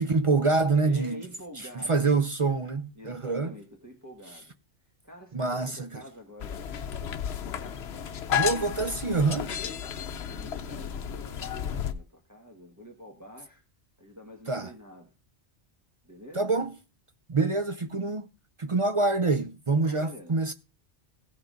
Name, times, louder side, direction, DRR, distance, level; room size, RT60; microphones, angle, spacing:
voice 1, 0.0-1.2 1.9-3.5 5.3-6.0 8.3-9.5 14.5-14.7 16.3-16.7 17.3-18.3 18.6-20.5, right 3 dB, 40° right, 0.5 m, -26 dB
voice 2, 0.8-2.1 2.9-4.5 4.8-7.0 9.8-13.6 14.0-15.1 16.0-16.7 19.8-20.4, equal, 15° right, 1.4 m, -47 dB
sound 1, 6.4-11.9, left 9 dB, 70° left, 1.0 m, -33 dB
16.0 x 5.7 x 3.9 m
omnidirectional pair, 1.2 m